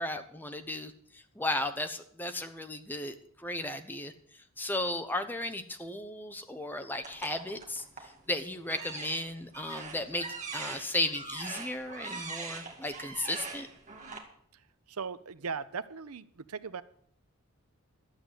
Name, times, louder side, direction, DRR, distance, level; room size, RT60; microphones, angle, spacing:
voice 1, 0.0-4.1 4.6-10.3 10.5-13.7, left 1 dB, 10° left, 8 dB, 0.8 m, -35 dB
sound 1, 7.0-8.2 8.6-14.2, right 4 dB, 35° right, 2.0 m, -42 dB
voice 2, 14.9-16.8, right 5 dB, 85° right, 15 dB, 0.7 m, -38 dB
12.5 x 8.1 x 8.1 m, 0.62 s
head